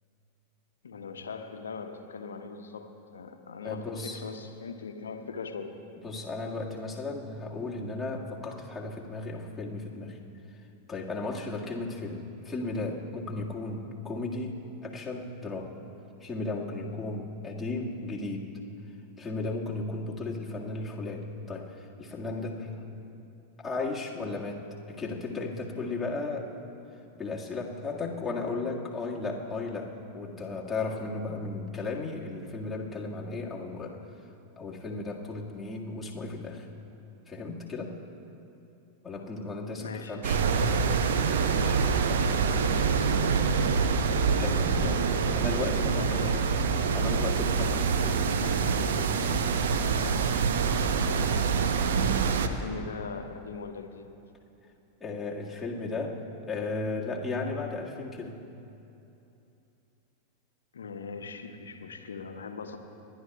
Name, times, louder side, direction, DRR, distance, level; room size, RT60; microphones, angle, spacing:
voice 1, 0.8-5.8 39.8-40.9 42.5-43.8 45.8-46.5 52.4-54.1 60.7-62.8, left 5 dB, 70° left, 6 dB, 1.0 m, -40 dB
voice 2, 3.6-4.2 6.0-10.2 10.9-15.7 16.2-18.5 19.2-22.8 23.6-26.5 27.2-34.0 34.6-36.7 37.3-38.0 39.0-40.4 41.5-41.8 44.4-46.4 46.9-48.2 55.0-58.4, left 3 dB, 10° left, -4 dB, 1.8 m, -35 dB
sound 1, 40.2-52.5, right 5 dB, 60° right, 0.8 m, -25 dB
29.5 x 11.5 x 2.3 m, 2.8 s
figure-of-eight pair, 90°, 0 cm